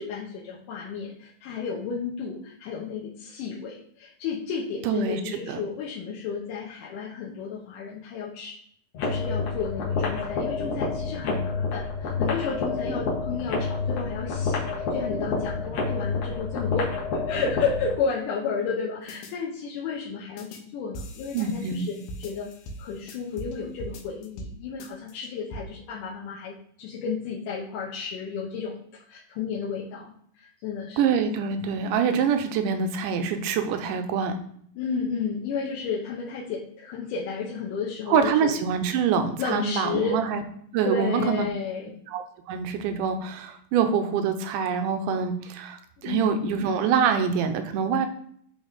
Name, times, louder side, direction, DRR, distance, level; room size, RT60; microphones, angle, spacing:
voice 1, 0.0-8.6 9.0-22.5 22.8-28.8 29.1-31.0 34.8-38.5 39.4-40.2 40.8-41.9 46.0-46.6, left 5 dB, 75° left, -4 dB, 2.2 m, -32 dB
voice 2, 4.8-5.2 5.5-5.6 21.3-21.8 31.0-34.4 38.1-40.4 40.7-41.5 42.1-48.1, right 6 dB, 80° right, 7 dB, 2.0 m, -25 dB
sound 1, 8.9-18.0, left 4 dB, 60° left, 2.1 m, -28 dB
sound 2, 19.1-19.3 20.4-20.6 20.9-23.5 23.8-24.5 24.8-25.6, equal, 90° left, 2.7 m, -40 dB
8.6 x 3.3 x 4.0 m, 0.64 s
omnidirectional pair, 4.2 m